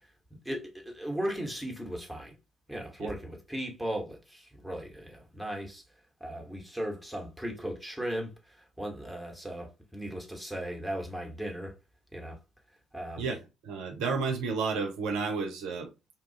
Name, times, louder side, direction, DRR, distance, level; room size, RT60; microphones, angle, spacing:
voice 1, 0.4-2.3 2.7-5.8 6.2-11.7 12.1-12.4 12.9-13.2, equal, ahead, 1.0 m, -37 dB
voice 2, 13.6-15.9, right 4 dB, 65° right, 0.4 m, -31 dB
2.7 x 2.3 x 2.7 m
figure-of-eight pair, 45°, 0 cm